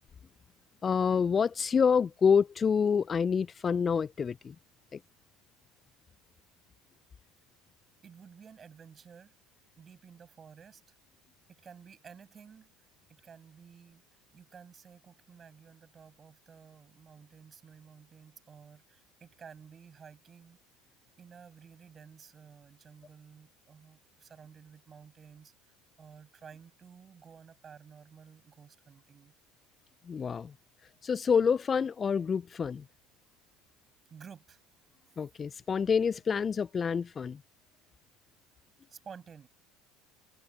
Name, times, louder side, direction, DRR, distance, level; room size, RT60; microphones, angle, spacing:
voice 1, 0.8-4.5 4.9-5.0 30.1-30.5 31.0-32.8 35.2-37.4, left 6 dB, 30° left, 0.3 m, -27 dB
voice 2, 8.0-9.3 9.8-11.0 11.5-12.7 13.1-14.0 14.3-20.6 21.2-25.5 26.0-29.3 34.1-34.6 38.9-39.5, right 7 dB, 35° right, 6.9 m, -53 dB
hypercardioid pair, 75°, 0 cm